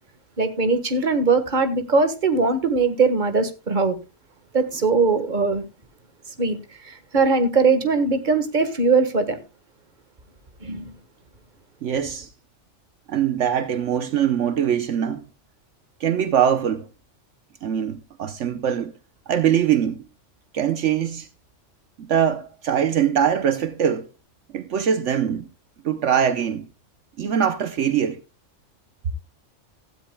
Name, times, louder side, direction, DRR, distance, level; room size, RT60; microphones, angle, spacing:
voice 1, 0.4-4.0 4.5-5.6 6.4-9.4 10.6-10.9, right 4 dB, 40° right, 1.6 m, -21 dB
voice 2, 11.8-12.3 13.1-15.3 16.0-16.9 17.6-18.9 19.3-20.0 20.5-21.3 22.0-24.1 24.5-25.5 25.8-26.7 27.2-28.2, right 9 dB, 70° right, 1.1 m, -22 dB
16.5 x 13.0 x 2.2 m
omnidirectional pair, 1.3 m